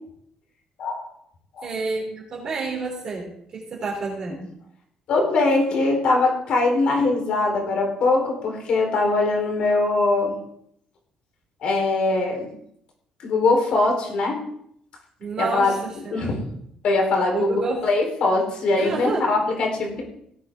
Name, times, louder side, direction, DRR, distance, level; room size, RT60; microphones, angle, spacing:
voice 1, 1.6-4.5 15.2-16.3 17.3-17.9 18.8-19.3, right 3 dB, 35° right, -3 dB, 3.3 m, -29 dB
voice 2, 5.1-10.3 11.6-12.5 13.2-14.4 15.4-15.8 16.1-16.4 16.8-20.0, left 3 dB, 55° left, 1 dB, 3.9 m, -22 dB
17.0 x 8.7 x 3.6 m, 0.71 s
cardioid pair, 170°, 2 cm